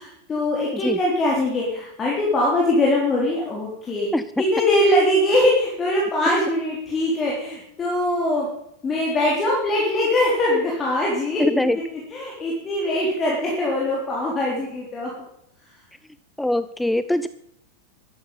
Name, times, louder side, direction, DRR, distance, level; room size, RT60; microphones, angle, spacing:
voice 1, 0.0-4.1 4.4-8.5 8.8-11.6 11.9-15.1, left 1 dB, 20° left, -4 dB, 3.8 m, -22 dB
voice 2, 11.4-11.8 16.4-17.3, left 1 dB, 5° left, 13 dB, 0.4 m, -22 dB
13.0 x 12.0 x 5.6 m, 0.77 s
figure-of-eight pair, 90°, 0 cm